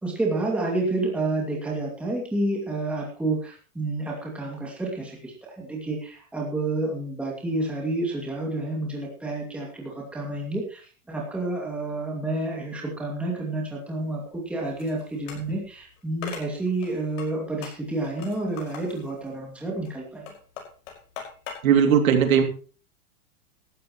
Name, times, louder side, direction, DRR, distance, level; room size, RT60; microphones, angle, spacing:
voice 1, 0.0-20.3, right 2 dB, 5° right, -2 dB, 2.4 m, -29 dB
sound 1, 14.0-21.6, left 7 dB, 60° left, 5.4 m, -42 dB
voice 2, 21.6-22.4, right 8 dB, 70° right, 6 dB, 2.8 m, -18 dB
17.5 x 12.5 x 3.1 m, 0.37 s
supercardioid pair, 175°, 42 cm